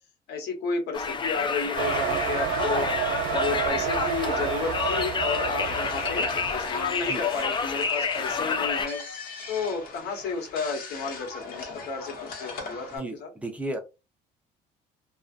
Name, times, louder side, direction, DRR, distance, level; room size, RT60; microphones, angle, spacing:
voice 1, 0.3-2.9 3.3-9.0 9.5-13.3, left 4 dB, 80° left, 3 dB, 1.1 m, -32 dB
Conversation, 0.9-8.9, left 5 dB, 30° left, 0.4 m, -29 dB
sound 1, 1.7-7.1, right 8 dB, 90° right, 0.6 m, -30 dB
sound 2, 5.6-13.0, left 4 dB, 60° left, 1.1 m, -39 dB
voice 2, 12.9-13.8, right 1 dB, 10° right, 4 dB, 0.7 m, -34 dB
2.5 x 2.4 x 2.4 m, 0.27 s
cardioid pair, 110°, 17 cm